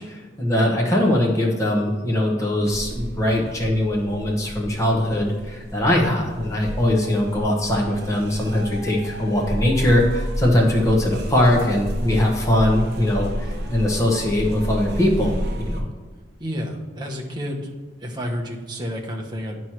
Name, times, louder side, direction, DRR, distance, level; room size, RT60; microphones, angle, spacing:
voice 1, 0.0-15.8, left 1 dB, 15° left, -2 dB, 1.0 m, -21 dB
sound 1, 2.6-15.8, equal, 55° right, 0.7 m, -31 dB
voice 2, 16.4-17.7 18.0-19.6, equal, 20° right, 0 dB, 0.9 m, -30 dB
9.3 x 3.1 x 5.8 m, 1.4 s
head